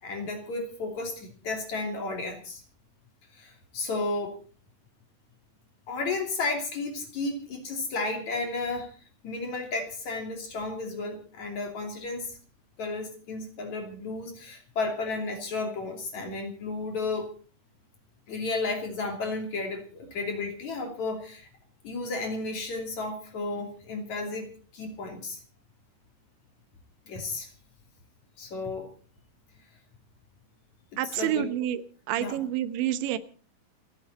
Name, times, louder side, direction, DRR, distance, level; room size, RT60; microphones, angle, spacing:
voice 1, 0.0-2.6 3.3-4.4 5.9-8.9 9.2-12.4 12.8-17.3 18.3-21.5 21.8-24.5 24.7-25.4 27.1-27.5 28.4-28.9 31.2-31.5 32.2-32.4, left 3 dB, 45° left, 3 dB, 4.0 m, -33 dB
voice 2, 31.0-31.8 32.1-33.2, right 12 dB, 90° right, 12 dB, 3.3 m, -28 dB
28.5 x 10.5 x 4.1 m, 0.39 s
omnidirectional pair, 5.1 m